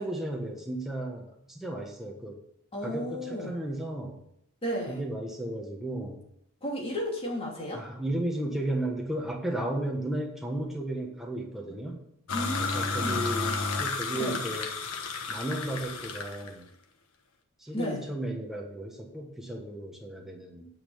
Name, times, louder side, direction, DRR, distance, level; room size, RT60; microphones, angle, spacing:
voice 1, 0.0-2.4 2.8-4.2 4.9-6.2 7.7-12.0 12.6-14.7 15.3-16.6 17.6-20.7, right 1 dB, ahead, -1 dB, 1.4 m, -34 dB
voice 2, 2.7-3.6 4.6-5.0 6.6-7.8 12.3-13.2 14.2-14.4 17.7-18.0, equal, 25° left, -2 dB, 2.9 m, -33 dB
sound 1, 12.3-16.5, left 4 dB, 80° left, 1.4 m, -32 dB
9.7 x 6.2 x 7.1 m, 0.74 s
head